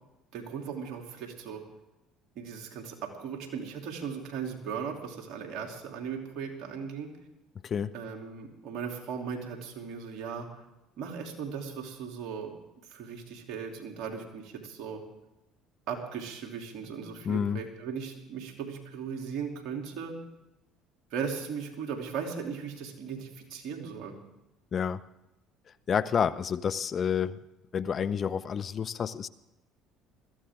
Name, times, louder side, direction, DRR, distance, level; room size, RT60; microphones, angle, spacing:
voice 1, 0.3-1.6 2.3-7.1 7.9-10.5 11.0-12.5 12.9-15.0 15.9-20.1 21.1-24.1, right 6 dB, 65° right, 2 dB, 3.2 m, -37 dB
voice 2, 17.3-17.6 24.7-25.0 25.9-27.4 27.7-29.3, left 7 dB, 45° left, 18 dB, 0.6 m, -29 dB
21.0 x 15.0 x 3.8 m, 0.95 s
hypercardioid pair, 70°, 0 cm